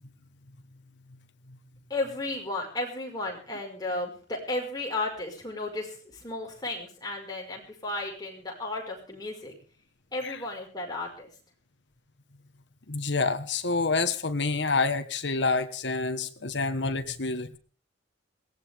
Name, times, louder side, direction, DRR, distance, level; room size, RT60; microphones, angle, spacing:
voice 1, 1.9-9.5 10.1-11.3, left 2 dB, 20° left, 0 dB, 5.5 m, -34 dB
voice 2, 12.9-17.6, left 3 dB, 65° left, 8 dB, 1.5 m, -28 dB
22.0 x 17.5 x 3.6 m, 0.40 s
head